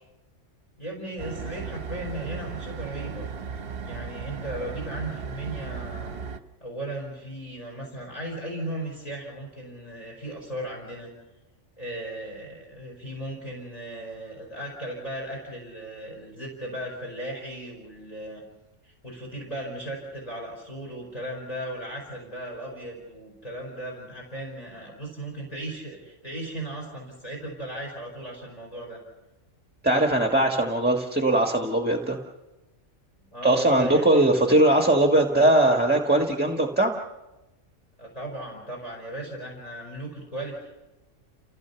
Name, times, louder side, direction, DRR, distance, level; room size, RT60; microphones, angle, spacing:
voice 1, 0.8-3.3 3.8-6.1 6.6-11.1 11.8-18.4 18.8-29.0 33.3-34.5 38.0-40.7, right 1 dB, 30° left, -1 dB, 4.8 m, -36 dB
sound 1, 1.2-6.4, right 5 dB, 55° right, 1.1 m, -36 dB
voice 2, 29.8-32.2 33.4-36.9, right 1 dB, 10° right, 2 dB, 1.4 m, -20 dB
29.0 x 16.0 x 6.9 m, 1.0 s
omnidirectional pair, 1.3 m